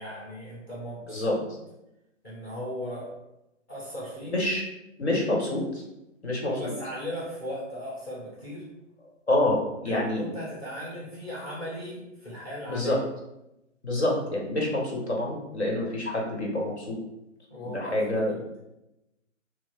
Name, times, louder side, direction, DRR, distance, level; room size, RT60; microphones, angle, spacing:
voice 1, 0.0-1.4 2.2-3.1 3.7-4.3 6.5-8.6 9.8-12.9 17.5-18.4, equal, 15° left, -6 dB, 1.1 m, -37 dB
voice 2, 4.3-4.6 5.0-5.8 6.2-6.7 9.3-10.2 12.7-13.0 13.8-17.0 17.6-18.3, left 1 dB, 60° left, -1 dB, 1.3 m, -27 dB
4.5 x 2.1 x 4.4 m, 0.91 s
figure-of-eight pair, 135°, 38 cm